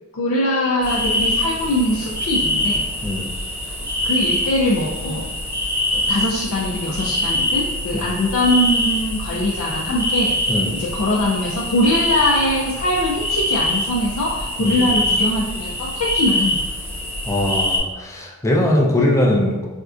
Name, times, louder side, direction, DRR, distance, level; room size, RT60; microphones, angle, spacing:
voice 1, 0.1-2.9 4.0-5.3 5.9-16.6, left 1 dB, 70° left, -4 dB, 0.4 m, -22 dB
sound 1, 0.8-17.8, left 1 dB, 10° right, 0.9 m, -24 dB
voice 2, 14.6-14.9 17.3-19.7, left 1 dB, 15° left, -2 dB, 0.4 m, -20 dB
4.3 x 2.5 x 2.4 m, 1.2 s
head